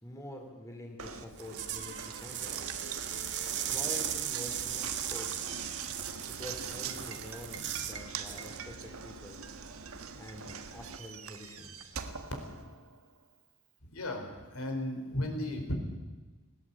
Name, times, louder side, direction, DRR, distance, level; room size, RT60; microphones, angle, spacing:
voice 1, 0.0-2.8 3.7-5.4 6.3-9.4 10.2-11.9, left 1 dB, 15° left, 2 dB, 2.8 m, -46 dB
Knock, 1.0-13.1, right 6 dB, 65° right, 1.4 m, -43 dB
sound 1, 1.3-8.0 8.3-8.6, right 10 dB, 50° right, 1.7 m, -37 dB
voice 2, 13.9-15.7, left 1 dB, 75° left, 4 dB, 4.4 m, -35 dB
19.5 x 17.5 x 8.4 m, 1.3 s
head